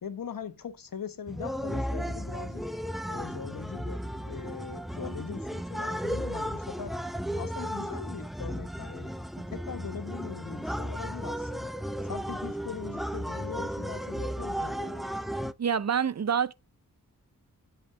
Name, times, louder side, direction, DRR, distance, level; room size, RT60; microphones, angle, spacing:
voice 1, 0.0-2.6 3.1-6.9 7.4-9.1 9.5-11.7 12.0-15.1, left 7 dB, 75° left, 1.3 m, -41 dB
sound 1, 1.3-15.5, equal, ahead, 0.6 m, -34 dB
voice 2, 15.6-16.5, right 7 dB, 50° right, 0.6 m, -26 dB
8.2 x 7.8 x 4.9 m
wide cardioid pair, 90°, 34 cm